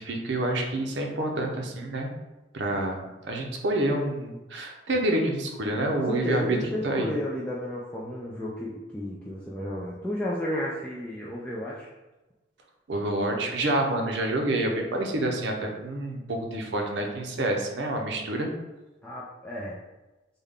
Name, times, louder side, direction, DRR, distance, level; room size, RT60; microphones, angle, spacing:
voice 1, 0.0-2.1 2.5-6.6 6.8-7.1 12.9-18.5, right 1 dB, 75° right, 2 dB, 0.6 m, -28 dB
voice 2, 5.9-11.9 19.0-19.8, left 1 dB, 5° left, -6 dB, 0.3 m, -32 dB
3.5 x 2.1 x 3.5 m, 1.1 s
head